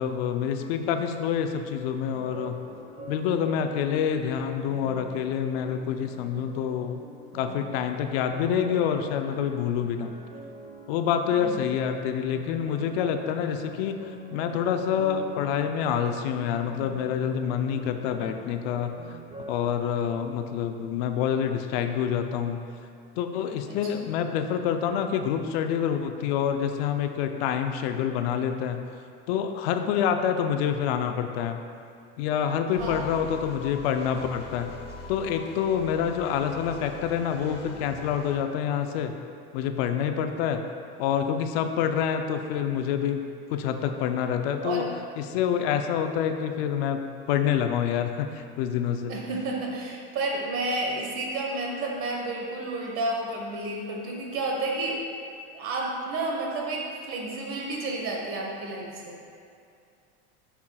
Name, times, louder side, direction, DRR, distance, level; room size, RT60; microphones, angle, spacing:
voice 1, 0.0-2.6 3.1-7.0 7.3-10.1 10.9-19.2 19.5-22.7 23.2-28.8 29.3-31.6 32.2-34.7 35.1-39.2 39.5-40.6 41.0-43.2 43.5-44.8 45.2-47.0 47.3-49.1, left 8 dB, 80° left, 6 dB, 0.6 m, -27 dB
sound 1, 2.1-19.6, right 1 dB, 25° right, 0.7 m, -44 dB
voice 2, 11.3-11.6 23.7-24.0 32.8-33.0 44.6-44.9 49.1-55.0 55.5-59.2, right 2 dB, 45° right, -1 dB, 1.2 m, -31 dB
sound 2, 32.8-38.4, left 2 dB, 35° left, 0.8 m, -42 dB
8.5 x 5.7 x 2.3 m, 2.4 s
cardioid pair, 150°, 30 cm